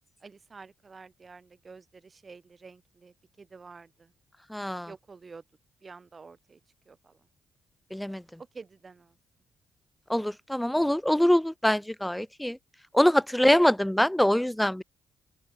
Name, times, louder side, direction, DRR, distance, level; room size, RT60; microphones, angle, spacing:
voice 1, 0.2-4.1 4.8-5.4 5.8-6.6 6.8-7.2 8.4-9.2 13.4-13.7, right 4 dB, 35° right, 4.7 m, -49 dB
voice 2, 4.5-4.9 7.9-8.2 10.1-12.6 12.9-14.8, left 1 dB, 5° left, 0.9 m, -24 dB
open air
cardioid pair, 90°, 0 cm